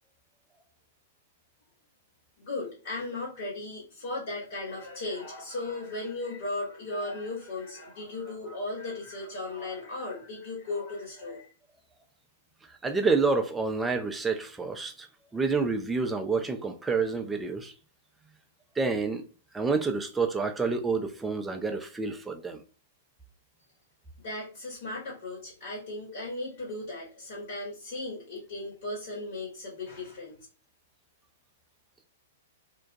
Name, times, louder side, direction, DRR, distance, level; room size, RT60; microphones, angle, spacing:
voice 1, 2.4-11.5 24.2-30.4, left 2 dB, 55° left, 1.1 m, -36 dB
voice 2, 12.8-15.1 15.3-17.7 18.8-19.2 19.5-22.6, right 4 dB, 10° right, 0.4 m, -28 dB
2.3 x 2.2 x 2.5 m
figure-of-eight pair, 110°, 0 cm